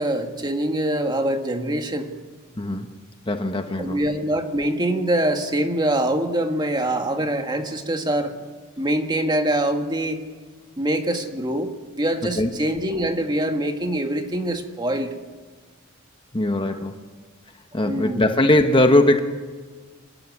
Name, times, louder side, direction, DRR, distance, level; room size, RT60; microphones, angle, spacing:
voice 1, 0.0-2.1 3.8-8.3 8.8-10.2 10.8-15.1 16.7-16.8 17.7-18.2, right 1 dB, 20° right, 5 dB, 1.7 m, -24 dB
voice 2, 2.6-2.9 3.3-4.0 12.4-12.5 16.3-17.0 17.7-19.2, left 1 dB, 25° left, 6 dB, 1.1 m, -20 dB
27.0 x 13.0 x 9.7 m, 1.4 s
head